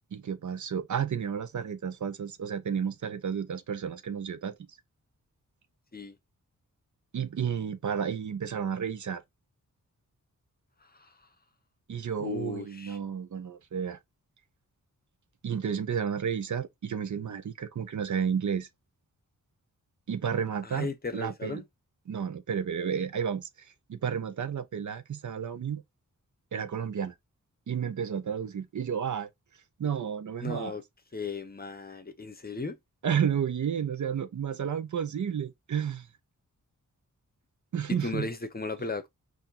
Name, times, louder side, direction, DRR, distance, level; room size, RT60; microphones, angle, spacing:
voice 1, 0.1-4.5 7.1-9.2 11.9-14.0 15.4-18.7 20.1-21.6 22.1-25.8 26.5-27.1 27.7-29.3 29.8-30.8 33.0-36.1 37.7-38.3, right 7 dB, 65° right, 0.8 m, -31 dB
voice 2, 12.2-13.0 20.6-21.6 30.4-30.8 31.1-32.8 37.9-39.1, left 4 dB, 30° left, 0.8 m, -36 dB
4.3 x 2.7 x 3.8 m
wide cardioid pair, 95°, 32 cm